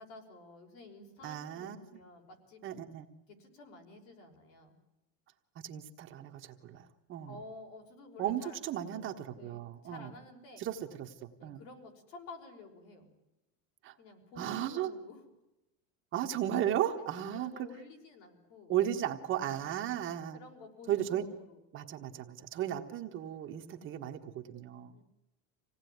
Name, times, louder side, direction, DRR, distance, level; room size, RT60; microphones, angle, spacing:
voice 1, 0.0-2.6 3.3-4.8 6.7-6.9 7.3-8.6 9.3-10.9 11.4-13.1 14.0-15.2 17.0-18.7 19.5-20.0 20.3-21.6 24.9-25.0, left 2 dB, 65° left, 3 dB, 5.9 m, -52 dB
voice 2, 1.2-1.8 2.6-3.1 5.6-6.8 7.1-7.3 8.2-10.1 10.6-11.1 11.4-11.6 13.8-13.9 14.4-14.9 16.1-17.7 18.7-20.4 20.9-21.3 21.7-24.9, right 11 dB, 30° right, 4 dB, 1.4 m, -35 dB
27.0 x 18.0 x 9.4 m, 0.95 s
cardioid pair, 175°, 41 cm